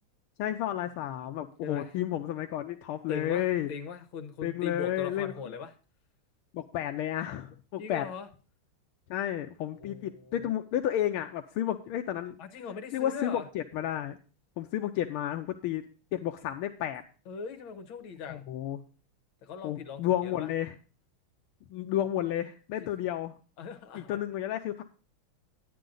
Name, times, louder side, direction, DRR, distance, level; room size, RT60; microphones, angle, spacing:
voice 1, 0.4-3.7 4.4-5.5 6.5-8.0 9.1-12.4 12.9-14.2 14.6-15.9 16.1-17.0 18.3-18.8 19.6-20.7 21.7-23.3 23.9-24.8, left 11 dB, 85° left, 5 dB, 1.6 m, -32 dB
voice 2, 3.1-5.7 7.8-8.3 9.8-10.5 12.4-13.5 17.3-18.5 19.4-20.5 22.8-22.9 23.6-24.2, left 6 dB, 70° left, 6 dB, 1.9 m, -40 dB
10.0 x 9.4 x 3.9 m, 0.36 s
omnidirectional pair, 2.3 m